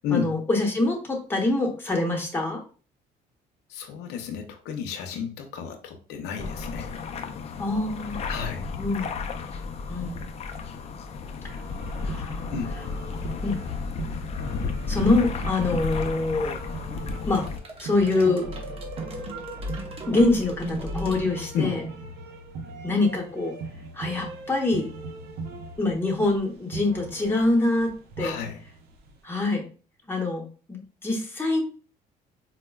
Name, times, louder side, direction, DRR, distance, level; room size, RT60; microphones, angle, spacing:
voice 1, 0.1-2.6 7.6-8.2 8.8-9.1 9.9-10.3 12.0-12.6 13.4-13.6 14.9-16.6 17.3-17.5 17.8-18.5 20.1-21.8 22.8-23.6 24.0-24.9 25.8-28.3 29.2-29.6 30.1-31.6, left 2 dB, 15° left, 1 dB, 0.9 m, -25 dB
voice 2, 3.7-6.9 8.3-8.7 12.5-12.7 18.1-18.2 21.5-21.8 28.2-28.6, left 7 dB, 90° left, 4 dB, 0.6 m, -31 dB
sound 1, 6.4-17.6, left 4 dB, 40° left, 0.4 m, -33 dB
sound 2, 11.4-29.2, right 3 dB, 70° right, 0.6 m, -40 dB
sound 3, 17.3-22.2, equal, 35° right, 0.7 m, -36 dB
4.4 x 2.1 x 2.2 m, 0.37 s
cardioid pair, 110°, 17 cm